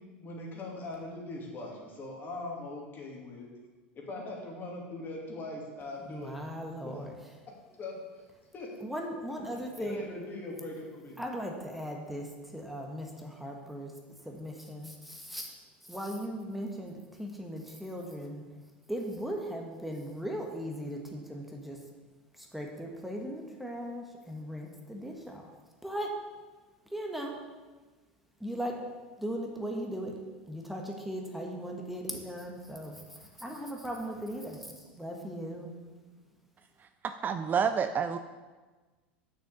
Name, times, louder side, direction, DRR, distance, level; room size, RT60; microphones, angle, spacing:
voice 1, 0.0-3.5 3.9-6.3 6.8-6.9 7.8-7.9 8.5-8.7 9.8-11.2, left 2 dB, 35° left, -1 dB, 2.6 m, -40 dB
voice 2, 6.0-7.1 8.8-10.1 11.2-13.9 14.2-15.5 15.9-18.4 18.9-21.8 22.4-25.5 25.8-26.1 26.9-27.4 28.4-28.8 29.2-30.2 30.5-35.7, equal, ahead, 0 dB, 1.4 m, -38 dB
voice 3, 37.0-38.2, right 6 dB, 30° right, 9 dB, 0.5 m, -29 dB
6.7 x 6.4 x 6.9 m, 1.3 s
hypercardioid pair, 90°, 6 cm